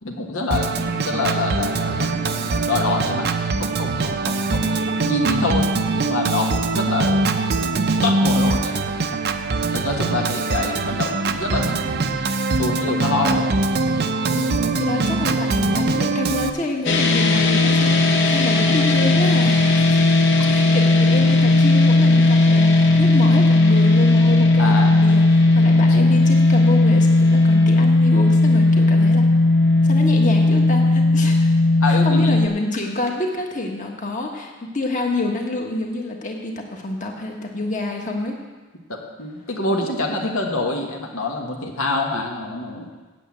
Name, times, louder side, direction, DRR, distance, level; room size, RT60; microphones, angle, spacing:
voice 1, 0.0-7.2 8.0-8.8 9.7-12.0 12.6-13.5 24.6-25.1 31.8-32.4 38.9-42.9, left 3 dB, 80° left, 0 dB, 1.6 m, -26 dB
Organ, 0.5-16.5, right 3 dB, 50° right, 0.6 m, -22 dB
voice 2, 14.3-19.7 20.5-29.4 29.8-31.5 31.8-38.3, left 2 dB, 35° left, 1 dB, 1.5 m, -27 dB
sound 1, 16.9-32.5, left 2 dB, 55° left, 1.0 m, -16 dB
8.4 x 7.8 x 8.4 m, 1.3 s
head